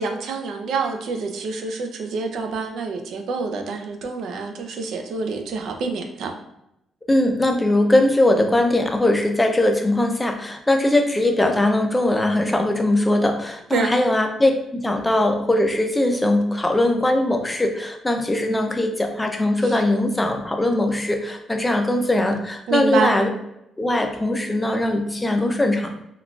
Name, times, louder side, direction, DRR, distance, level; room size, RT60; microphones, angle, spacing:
voice 1, 0.0-6.3 13.7-13.9 22.7-23.1, right 4 dB, 70° right, 4 dB, 0.4 m, -27 dB
voice 2, 7.1-23.3 23.8-25.9, left 1 dB, 10° left, 4 dB, 0.4 m, -20 dB
3.6 x 2.3 x 2.3 m, 0.83 s
cardioid pair, 125°, 0 cm